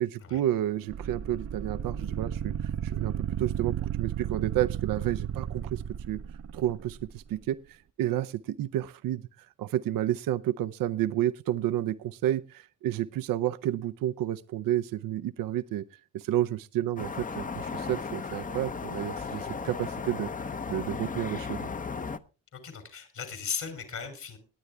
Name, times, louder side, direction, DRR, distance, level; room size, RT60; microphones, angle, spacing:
voice 1, 0.0-2.5 2.8-6.2 6.5-9.2 9.6-15.9 16.1-20.3 20.7-21.7, right 12 dB, 90° right, 12 dB, 0.6 m, -30 dB
sound 1, 0.9-7.1, right 10 dB, 45° right, 0.6 m, -33 dB
sound 2, 17.0-22.2, left 5 dB, 25° left, 0.7 m, -35 dB
voice 2, 22.5-24.4, left 6 dB, 60° left, 8 dB, 3.1 m, -37 dB
19.5 x 9.2 x 3.4 m, 0.32 s
cardioid pair, 110°, 33 cm